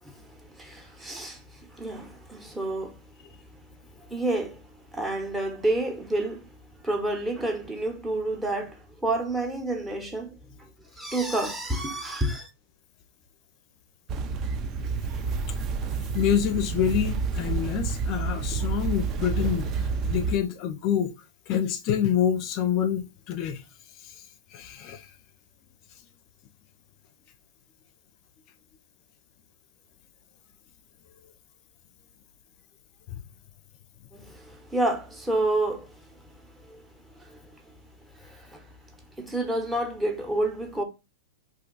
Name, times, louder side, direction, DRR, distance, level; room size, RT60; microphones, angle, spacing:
voice 1, 0.0-6.5 6.8-10.7 11.0-12.5 34.1-37.7 38.0-38.8 39.2-40.8, right 2 dB, 10° right, 0.8 m, -30 dB
sound 1, 14.1-20.4, right 4 dB, 35° right, 0.4 m, -29 dB
voice 2, 16.1-21.1 21.5-23.6 24.0-24.1 24.5-25.1, left 9 dB, 45° left, 0.5 m, -27 dB
2.6 x 2.3 x 3.8 m
hypercardioid pair, 115°, 0 cm